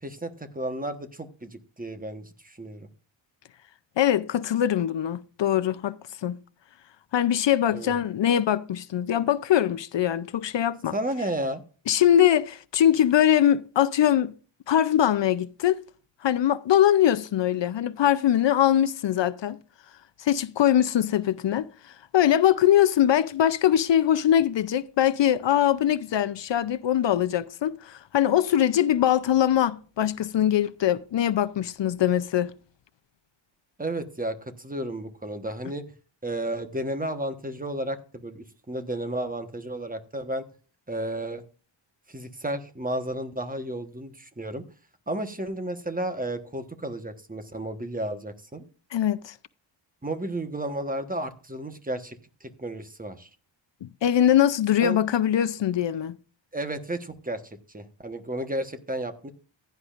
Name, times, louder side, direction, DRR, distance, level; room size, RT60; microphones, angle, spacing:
voice 1, 0.0-2.9 7.7-8.0 10.9-11.6 33.8-35.8 36.2-40.4 40.9-41.4 42.1-44.6 45.1-48.6 50.0-53.3 54.8-55.0 56.5-59.3, right 1 dB, 20° right, 1.2 m, -32 dB
voice 2, 4.0-5.9 6.2-6.4 7.1-10.9 11.9-14.3 14.7-15.8 16.2-19.6 20.2-21.7 22.1-32.5 48.9-49.3 53.8-56.2, left 10 dB, 65° left, 0.6 m, -22 dB
15.5 x 10.5 x 2.5 m
wide cardioid pair, 105°, 47 cm